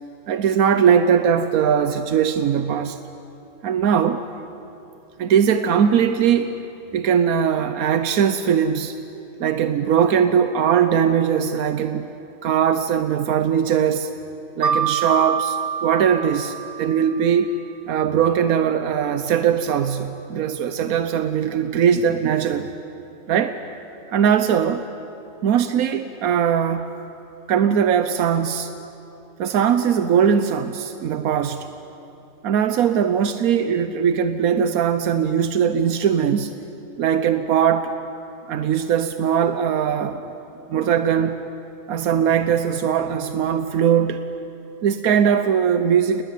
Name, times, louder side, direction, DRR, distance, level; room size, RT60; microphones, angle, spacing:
voice 1, 0.3-3.0 3.6-4.2 5.2-6.6 6.9-9.0 9.4-12.1 12.4-14.1 14.6-17.5 17.9-22.7 23.3-23.6 24.1-24.8 25.4-26.9 27.5-28.7 29.4-31.7 32.4-36.5 37.0-38.0 38.5-40.2 40.7-41.4 41.9-44.2 44.8-46.2, right 8 dB, 90° right, 10 dB, 1.3 m, -20 dB
Mallet percussion, 14.6-17.4, right 6 dB, 60° right, 1.4 m, -26 dB
28.5 x 20.0 x 8.3 m, 2.7 s
omnidirectional pair, 1.5 m